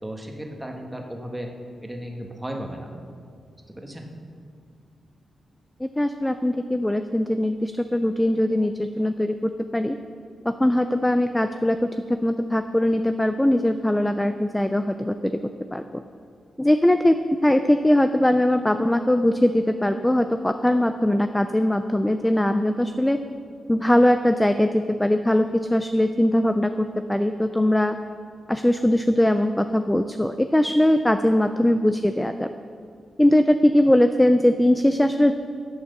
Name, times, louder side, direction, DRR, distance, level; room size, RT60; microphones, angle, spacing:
voice 1, 0.0-1.5 1.8-2.9 3.7-4.0, equal, 10° right, 1 dB, 1.4 m, -35 dB
voice 2, 5.8-10.0 10.5-15.4 15.7-16.0 16.6-17.2 17.4-23.2 23.7-28.0 28.5-32.5 33.2-35.3, left 1 dB, 5° left, 8 dB, 0.4 m, -21 dB
10.5 x 8.6 x 6.6 m, 2.3 s
wide cardioid pair, 120°, 0 cm